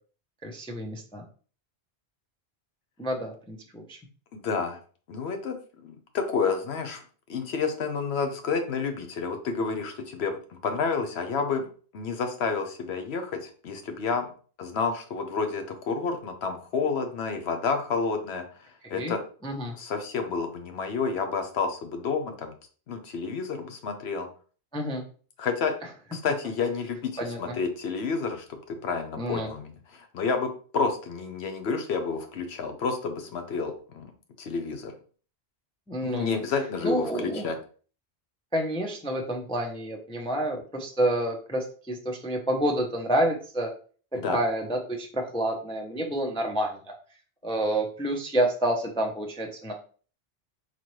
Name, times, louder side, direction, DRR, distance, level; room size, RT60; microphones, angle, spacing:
voice 1, 0.4-1.2 3.0-4.0 18.8-19.1 19.4-19.7 24.7-25.1 27.2-27.6 29.2-29.5 35.9-36.4 36.8-37.5 38.5-43.7 44.1-46.9 47.4-49.7, right 1 dB, 5° left, 1 dB, 0.4 m, -29 dB
voice 2, 4.3-4.8 5.1-5.6 5.8-7.0 7.3-11.6 11.9-14.3 14.6-19.2 19.7-22.5 22.9-24.3 25.4-25.7 26.1-34.1 34.4-34.9 36.0-37.6 44.2-44.4, left 5 dB, 75° left, 6 dB, 1.0 m, -30 dB
4.1 x 3.0 x 3.1 m, 0.41 s
omnidirectional pair, 1.1 m